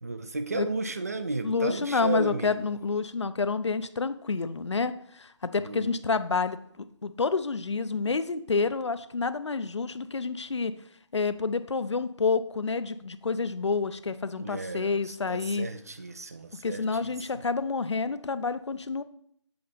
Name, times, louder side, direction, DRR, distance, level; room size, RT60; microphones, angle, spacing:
voice 1, 0.0-2.6 5.6-5.9 14.4-17.4, right 3 dB, 30° right, 10 dB, 0.4 m, -34 dB
voice 2, 1.4-6.6 7.0-10.7 11.1-15.7 16.6-19.0, left 4 dB, 65° left, 13 dB, 0.5 m, -28 dB
7.7 x 4.1 x 3.9 m, 0.69 s
figure-of-eight pair, 160°, 16 cm